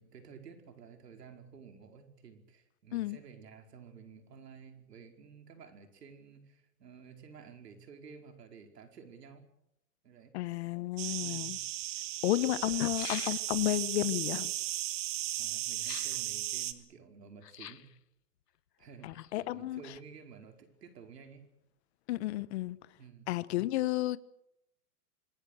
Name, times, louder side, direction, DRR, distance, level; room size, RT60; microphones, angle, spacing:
voice 1, 0.0-9.5 10.0-10.4 11.2-11.6 15.3-17.9 18.8-21.4 23.0-23.3, right 6 dB, 80° right, 5.0 m, -52 dB
voice 2, 10.3-11.6 12.2-14.5 19.0-19.8 22.1-22.8 23.3-24.2, left 16 dB, 45° left, 1.1 m, -32 dB
sound 1, 11.0-16.7, right 14 dB, 50° right, 2.0 m, -36 dB
sound 2, 11.3-11.4 12.2-12.3 12.6-13.8 15.8-16.3 17.4-18.0 18.8-19.6 19.9-20.0, left 10 dB, 85° left, 1.2 m, -44 dB
26.5 x 20.5 x 6.6 m
hypercardioid pair, 140°, 47 cm